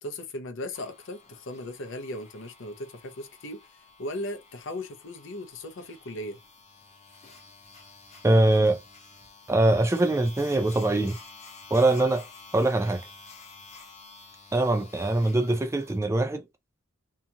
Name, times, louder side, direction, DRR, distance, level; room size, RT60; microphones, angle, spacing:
voice 1, 0.0-6.4, left 1 dB, 60° left, 0.6 m, -37 dB
sound 1, 0.7-16.0, left 3 dB, 30° left, 0.8 m, -50 dB
voice 2, 8.2-8.8 9.5-11.2 11.7-12.3 12.5-13.0 14.5-16.4, right 2 dB, 15° right, 0.4 m, -22 dB
2.8 x 2.4 x 2.7 m
head